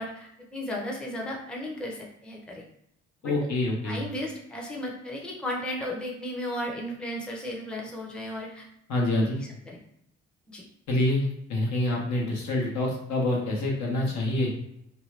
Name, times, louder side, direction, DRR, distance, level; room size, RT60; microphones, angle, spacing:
voice 1, 0.0-2.6 3.2-3.3 3.8-8.7 9.4-9.8 10.5-10.6, left 1 dB, 5° left, -2 dB, 0.6 m, -35 dB
voice 2, 3.2-4.0 8.9-9.4 10.9-14.5, left 1 dB, 65° left, -2 dB, 0.9 m, -26 dB
2.7 x 2.2 x 3.1 m, 0.79 s
cardioid pair, 90°, 30 cm